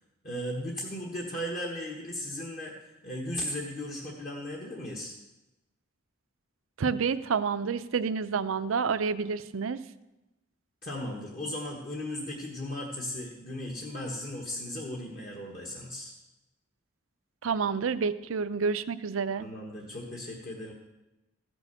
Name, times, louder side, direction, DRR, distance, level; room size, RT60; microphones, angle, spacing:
voice 1, 0.2-2.7 3.0-5.2 10.8-16.1 19.4-20.7, left 1 dB, 45° left, -2 dB, 1.4 m, -36 dB
voice 2, 6.8-9.8 17.4-19.5, right 5 dB, 90° right, 14 dB, 0.5 m, -29 dB
14.5 x 6.2 x 6.9 m, 0.99 s
head